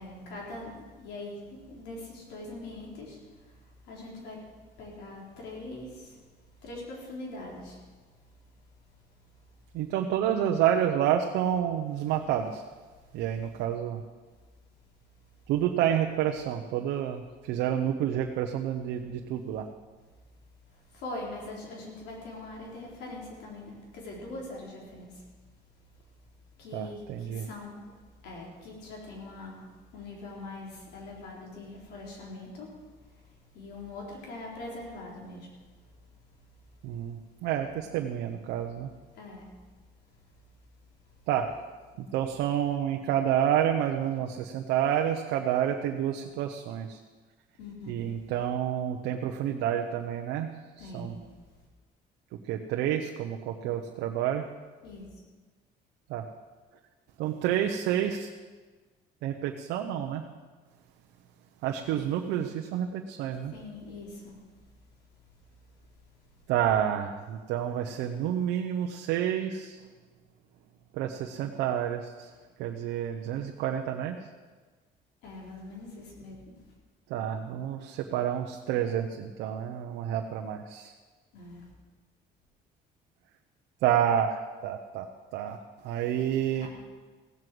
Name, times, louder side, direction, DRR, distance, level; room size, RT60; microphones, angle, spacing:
voice 1, 0.0-7.8 8.3-8.6 8.9-9.4 20.7-25.2 26.6-35.9 36.5-36.6 36.9-37.0 39.1-39.5 40.2-40.3 41.0-41.1 47.6-48.1 50.8-51.3 54.8-55.1 61.8-62.0 63.5-64.5 64.9-65.0 65.4-65.5 66.1-66.2 75.2-76.7 81.3-81.7 86.6-86.7, left 2 dB, 80° left, -2 dB, 4.3 m, -43 dB
voice 2, 9.7-12.6 13.1-14.0 15.5-19.7 26.7-27.5 36.8-38.9 41.3-41.5 42.0-47.0 47.9-50.5 50.8-51.1 52.3-54.5 56.1-56.3 57.2-58.3 59.2-60.2 61.6-63.5 66.5-69.8 70.9-72.3 72.6-74.2 77.1-80.9 83.8-85.1 85.3-85.6 85.8-86.7, right 10 dB, 90° right, 4 dB, 0.9 m, -29 dB
16.0 x 7.9 x 7.8 m, 1.4 s
cardioid pair, 110°, 17 cm